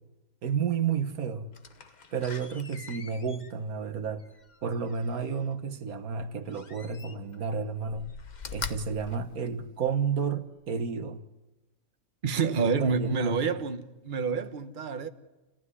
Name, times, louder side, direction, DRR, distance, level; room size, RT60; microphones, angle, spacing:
voice 1, 0.4-1.5 2.1-4.2 4.6-8.1 8.5-11.2 12.5-13.6, right 6 dB, 85° right, 1.7 m, -31 dB
Slam, 1.5-5.4 6.5-7.4 7.8-10.1 10.6-10.7, left 5 dB, 35° left, 1.0 m, -43 dB
voice 2, 12.2-15.1, right 5 dB, 40° right, 1.2 m, -28 dB
28.5 x 15.5 x 9.8 m
omnidirectional pair, 1.5 m